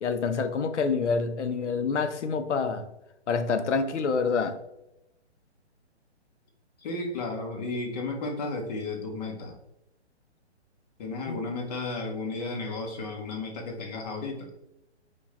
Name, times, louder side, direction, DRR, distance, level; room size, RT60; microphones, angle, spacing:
voice 1, 0.0-2.8 3.3-4.6 11.3-11.4, left 5 dB, 85° left, 9 dB, 0.6 m, -27 dB
voice 2, 6.8-9.5 11.0-14.5, left 3 dB, 35° left, 1 dB, 0.8 m, -33 dB
4.4 x 2.3 x 2.9 m, 0.86 s
hypercardioid pair, 145°, 34 cm